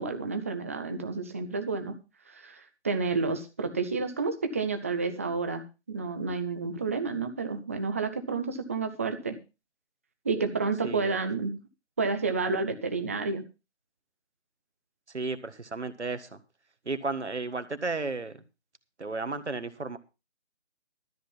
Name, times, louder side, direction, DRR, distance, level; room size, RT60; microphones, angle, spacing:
voice 1, 0.0-2.0 2.3-9.4 10.2-11.6 12.0-13.4, right 4 dB, 15° right, 7 dB, 0.6 m, -30 dB
voice 2, 10.8-11.2 15.1-16.4 16.8-18.4 19.0-20.0, right 3 dB, 80° right, 11 dB, 1.6 m, -33 dB
13.0 x 7.8 x 5.6 m, 0.29 s
figure-of-eight pair, 150°, 34 cm